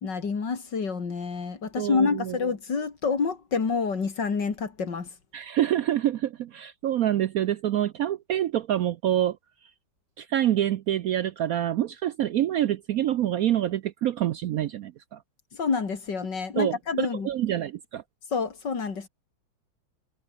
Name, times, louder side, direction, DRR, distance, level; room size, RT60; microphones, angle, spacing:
voice 1, 0.0-5.1 15.5-17.3 18.3-19.1, left 5 dB, 70° left, 3.3 m, -28 dB
voice 2, 1.8-2.4 5.3-9.4 10.2-15.2 16.6-18.0, right 12 dB, 65° right, 0.9 m, -26 dB
omnidirectional pair, 2.0 m